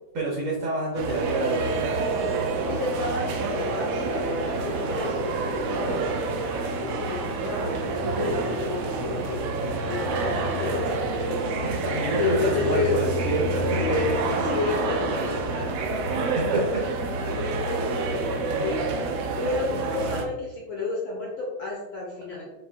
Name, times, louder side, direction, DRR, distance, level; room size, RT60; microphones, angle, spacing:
voice 1, 0.1-2.0 11.6-13.8 16.3-16.8, right 2 dB, 60° right, -4 dB, 1.4 m, -28 dB
sound 1, 1.0-20.2, right 3 dB, 80° right, 1.5 m, -28 dB
voice 2, 2.4-9.4 9.8-11.7 12.2-13.0 13.8-14.1 14.4-15.9 16.4-18.8 19.3-22.5, left 3 dB, 85° left, -3 dB, 1.1 m, -31 dB
6.7 x 2.6 x 2.4 m, 1.0 s
omnidirectional pair, 3.3 m